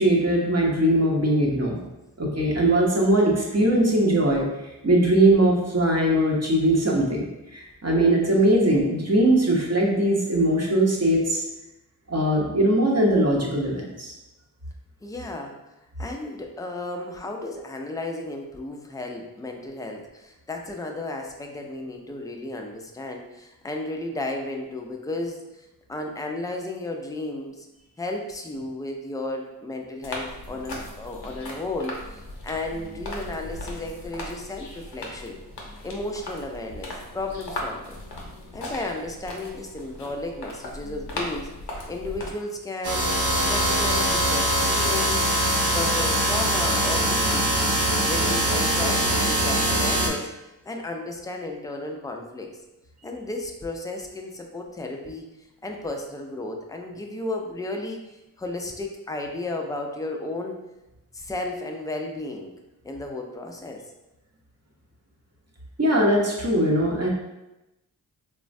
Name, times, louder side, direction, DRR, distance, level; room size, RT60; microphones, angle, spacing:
voice 1, 0.0-1.8 2.2-4.4 4.8-7.3 7.5-11.4 12.1-14.1 65.8-67.1, right 1 dB, 40° right, -2 dB, 0.8 m, -20 dB
voice 2, 15.0-15.6 16.0-27.7 28.0-35.4 35.8-38.0 38.5-41.5 41.9-43.1 43.5-45.3 45.7-47.5 48.1-50.3 50.6-52.5 53.0-55.3 55.6-60.6 61.1-62.5 62.8-63.8, left 2 dB, 10° left, 2 dB, 0.3 m, -33 dB
sound 1, 30.0-42.3, left 1 dB, 85° left, 0.6 m, -38 dB
sound 2, 42.8-50.1, right 1 dB, 70° right, 0.6 m, -22 dB
3.1 x 2.1 x 2.6 m, 0.97 s
cardioid pair, 45°, 40 cm